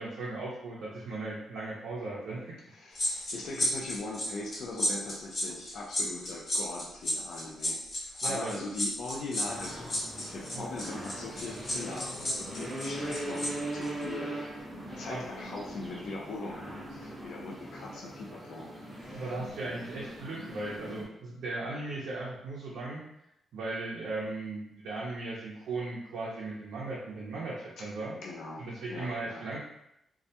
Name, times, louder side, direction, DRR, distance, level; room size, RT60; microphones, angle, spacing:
voice 1, 0.0-2.4 8.2-8.6 10.5-10.6 15.1-15.3 19.1-23.0 23.5-28.2 28.6-29.6, right 2 dB, 85° right, -6 dB, 0.5 m, -37 dB
voice 2, 2.7-14.6 15.0-19.2 28.2-29.4, left 3 dB, 65° left, -2 dB, 0.4 m, -41 dB
sound 1, 2.9-13.5 13.8-14.0, left 1 dB, 35° left, 0.8 m, -33 dB
sound 2, 9.4-21.0, right 1 dB, 10° right, 0.5 m, -40 dB
2.2 x 2.1 x 2.7 m, 0.81 s
wide cardioid pair, 170°, 0 cm